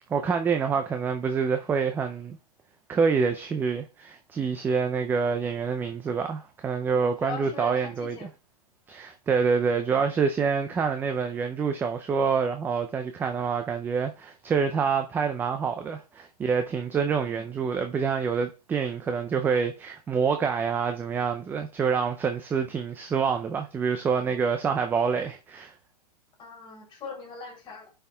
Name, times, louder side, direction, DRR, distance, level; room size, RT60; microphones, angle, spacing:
voice 1, 0.1-2.4 2.9-8.3 8.9-25.7, right 6 dB, 10° right, 0.4 m, -27 dB
voice 2, 6.9-8.3 17.1-17.5 26.4-27.9, left 4 dB, 25° left, 3.0 m, -41 dB
16.0 x 5.6 x 2.2 m
hypercardioid pair, 130°, 20 cm